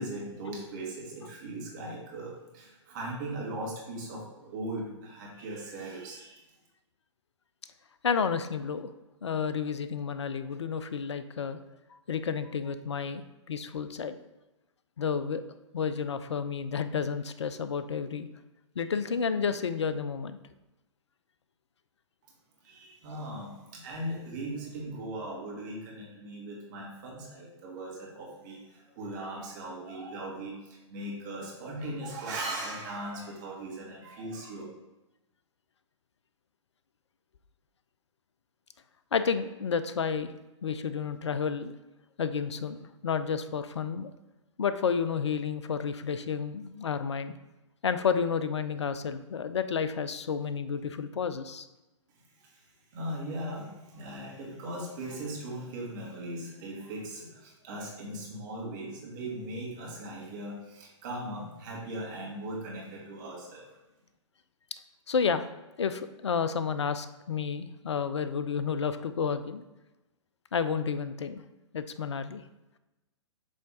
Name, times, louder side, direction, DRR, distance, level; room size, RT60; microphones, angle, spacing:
voice 1, 0.0-6.5 22.6-34.6 52.4-52.7 52.9-63.8, right 1 dB, 40° right, -3 dB, 1.8 m, -39 dB
voice 2, 8.0-8.9 9.2-11.6 11.9-14.2 15.0-15.4 15.7-18.3 18.8-20.4 39.1-40.3 40.6-41.7 42.2-42.8 43.0-44.1 44.6-47.3 47.8-51.7 65.1-65.4 65.8-69.6 70.5-71.4 71.7-72.4, left 6 dB, 65° left, 11 dB, 0.5 m, -31 dB
7.4 x 3.4 x 3.9 m, 1.0 s
figure-of-eight pair, 115°, 16 cm